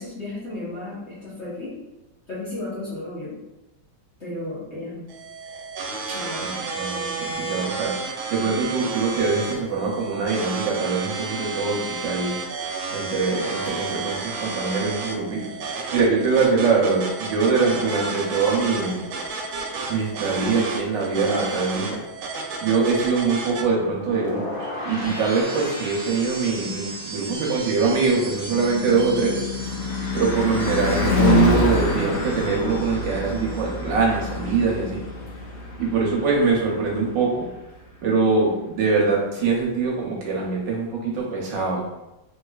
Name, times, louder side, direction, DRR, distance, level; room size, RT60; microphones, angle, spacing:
voice 1, 0.0-1.7 2.3-3.4 4.2-5.0 6.1-6.5, left 2 dB, 45° left, -10 dB, 1.1 m, -33 dB
sound 1, 5.1-23.6, right 3 dB, 90° right, 1.4 m, -31 dB
voice 2, 6.1-12.3 12.9-19.0 19.9-22.0 22.6-29.4 30.1-35.0 35.8-37.5 38.0-41.8, right 4 dB, 70° right, -2 dB, 1.3 m, -23 dB
sound 2, 23.8-34.0 34.2-34.7, right 1 dB, 35° right, 0.9 m, -36 dB
Car passing by / Truck / Engine, 27.1-37.4, left 2 dB, 70° left, 1.1 m, -27 dB
3.3 x 3.1 x 2.3 m, 0.96 s
omnidirectional pair, 2.2 m